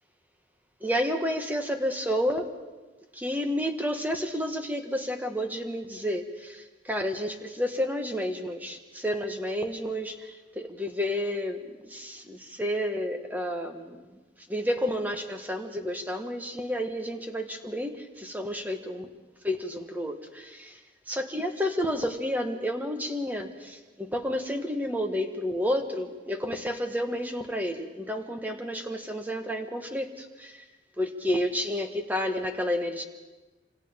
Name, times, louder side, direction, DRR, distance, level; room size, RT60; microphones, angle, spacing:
voice 1, 0.8-2.5 3.1-14.1 14.5-19.1 19.4-20.8 21.1-30.6 31.0-33.0, equal, 10° right, 4 dB, 1.4 m, -30 dB
27.0 x 26.5 x 3.8 m, 1.2 s
head